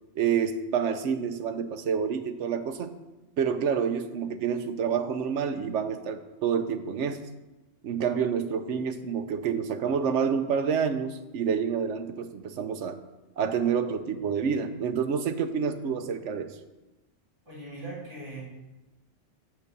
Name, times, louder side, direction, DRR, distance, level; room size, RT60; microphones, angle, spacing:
voice 1, 0.2-2.9 3.4-7.2 7.8-13.0 13.4-16.6, right 7 dB, 85° right, 8 dB, 1.0 m, -28 dB
voice 2, 17.5-18.4, right 2 dB, 20° right, -8 dB, 3.9 m, -40 dB
7.6 x 6.2 x 6.7 m, 1.1 s
omnidirectional pair, 1.2 m